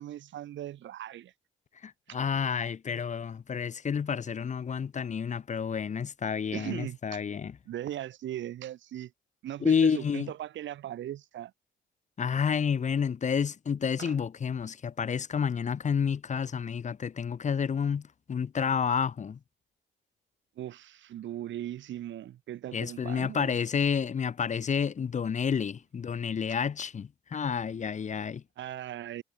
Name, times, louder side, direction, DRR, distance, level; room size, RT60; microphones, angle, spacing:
voice 1, 0.0-1.3 2.1-2.2 6.5-7.2 7.7-9.1 9.4-11.5 14.0-14.1 20.6-23.5 28.6-29.2, right 12 dB, 70° right, 1.3 m, -38 dB
voice 2, 1.8-7.6 9.6-10.3 12.2-19.4 22.7-28.4, left 7 dB, 35° left, 0.8 m, -30 dB
cardioid pair, 90°, 20 cm